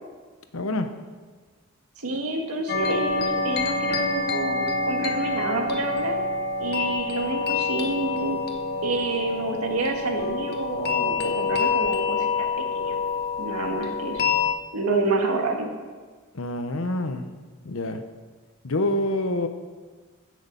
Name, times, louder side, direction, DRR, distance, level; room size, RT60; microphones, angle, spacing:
voice 1, 0.5-0.9 16.3-17.2 17.6-18.0 18.6-19.5, left 1 dB, 70° left, 8 dB, 0.9 m, -26 dB
voice 2, 2.0-6.2 6.6-8.4 8.8-12.5 12.8-12.9 13.4-14.2 14.7-15.7, right 2 dB, 90° right, 2 dB, 1.8 m, -28 dB
sound 1, 2.7-14.5, left 4 dB, 45° left, 1.2 m, -27 dB
15.5 x 6.4 x 5.4 m, 1.4 s
head